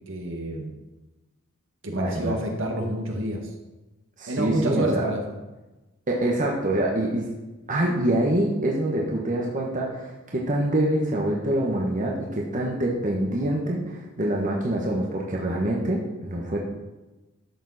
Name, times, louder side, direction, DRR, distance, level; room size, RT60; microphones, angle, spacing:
voice 1, 0.1-0.8 1.8-3.5 4.3-5.2, right 1 dB, 60° right, 2 dB, 1.8 m, -28 dB
voice 2, 1.9-2.3 4.2-5.1 6.1-7.2 7.7-16.6, right 1 dB, 40° right, -2 dB, 1.3 m, -25 dB
12.0 x 7.3 x 4.2 m, 1.1 s
head